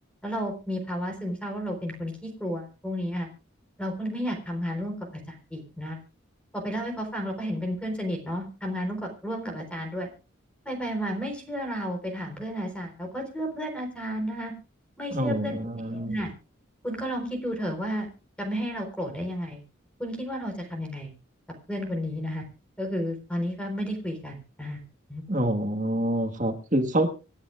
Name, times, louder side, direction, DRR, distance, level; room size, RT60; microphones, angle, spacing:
voice 1, 0.2-3.3 3.8-6.0 6.5-10.1 10.6-14.5 15.0-15.6 15.9-16.3 16.8-18.1 18.4-19.6 20.0-21.1 21.7-22.4 22.8-24.8 25.1-25.2, equal, 5° left, 3 dB, 4.1 m, -32 dB
voice 2, 15.1-16.1 25.3-27.1, right 1 dB, 40° right, 6 dB, 1.6 m, -26 dB
27.5 x 9.8 x 2.5 m, 0.32 s
head